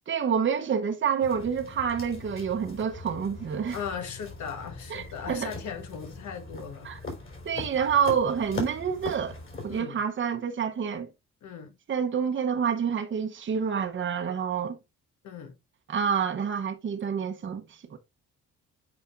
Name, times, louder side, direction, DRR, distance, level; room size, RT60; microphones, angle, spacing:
voice 1, 0.1-3.8 4.9-5.5 6.8-7.0 7.4-9.4 9.6-11.1 11.9-14.8 15.9-18.0, right 7 dB, 40° right, 0.8 m, -28 dB
sound 1, 1.2-9.8, left 3 dB, 45° left, 4.2 m, -41 dB
voice 2, 3.6-6.9 9.7-10.0 11.4-11.8 15.2-15.5, left 7 dB, 70° left, 1.2 m, -38 dB
8.3 x 5.0 x 2.5 m
cardioid pair, 90°, 30 cm